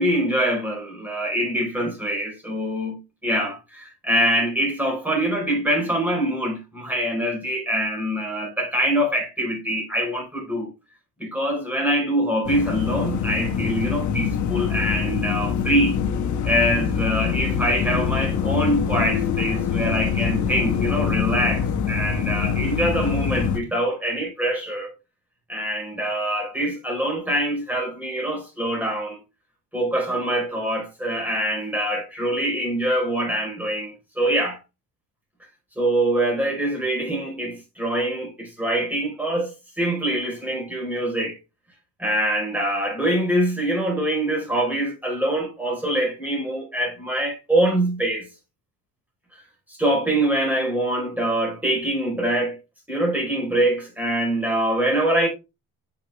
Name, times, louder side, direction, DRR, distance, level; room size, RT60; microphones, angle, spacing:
voice 1, 0.0-10.7 11.2-16.0 16.4-24.9 25.5-29.2 29.7-34.6 35.8-41.3 42.0-48.3 49.8-52.6 52.9-55.3, right 1 dB, 5° right, 4.2 m, -24 dB
sound 1, 12.4-23.6, left 7 dB, 50° left, 1.2 m, -24 dB
6.8 x 6.0 x 3.3 m
cardioid pair, 115°, 37 cm